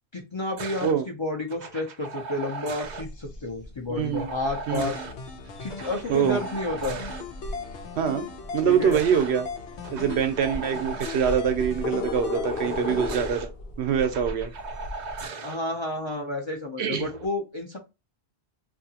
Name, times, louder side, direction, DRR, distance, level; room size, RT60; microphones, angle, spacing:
voice 1, 0.1-5.0 5.6-7.0 8.6-9.0 15.4-17.8, left 2 dB, 35° left, 0.5 m, -31 dB
sound 1, 0.6-0.9 1.5-3.0 4.1-5.1 5.7-7.2 8.5-9.3 9.8-11.4 12.5-13.5 14.0-15.6 16.9-17.3, right 4 dB, 60° right, 0.5 m, -38 dB
sound 2, 2.8-15.3, left 3 dB, 65° left, 0.9 m, -38 dB
voice 2, 3.9-4.3 4.7-4.9 6.1-6.4 8.0-8.3 8.5-9.5 9.9-13.5 13.8-14.5 16.8-17.1, right 8 dB, 75° right, 0.9 m, -24 dB
sound 3, 4.7-13.2, left 4 dB, 90° left, 1.0 m, -39 dB
2.8 x 2.5 x 2.7 m
omnidirectional pair, 1.1 m